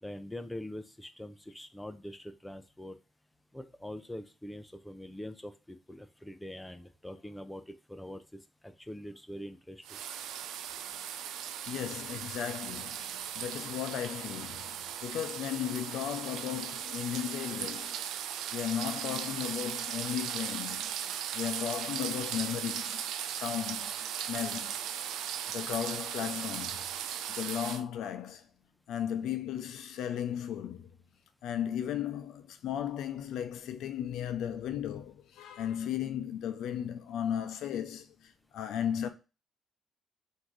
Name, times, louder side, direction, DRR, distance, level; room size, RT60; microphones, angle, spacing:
voice 1, 0.0-3.0 3.5-10.0, left 1 dB, 5° left, 0.5 m, -44 dB
sound 1, 9.8-27.8, right 9 dB, 85° right, 0.4 m, -38 dB
voice 2, 11.7-13.1 13.4-14.6 15.0-18.0 18.5-20.9 21.3-24.0 24.3-24.8 25.5-26.8 27.3-28.4 28.9-30.9 31.4-38.1 38.5-39.1, left 9 dB, 85° left, 0.5 m, -35 dB
3.7 x 2.7 x 4.7 m
cardioid pair, 90°, 0 cm